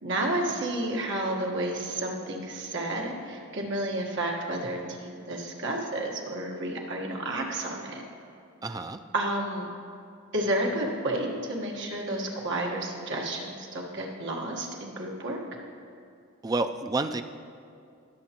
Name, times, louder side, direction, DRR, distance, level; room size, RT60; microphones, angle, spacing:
voice 1, 0.0-8.0 9.1-9.7 10.3-15.4, right 1 dB, 60° right, 0 dB, 1.4 m, -31 dB
voice 2, 8.6-9.0 16.4-17.2, right 3 dB, 20° right, 8 dB, 0.3 m, -29 dB
18.0 x 7.2 x 2.9 m, 2.4 s
head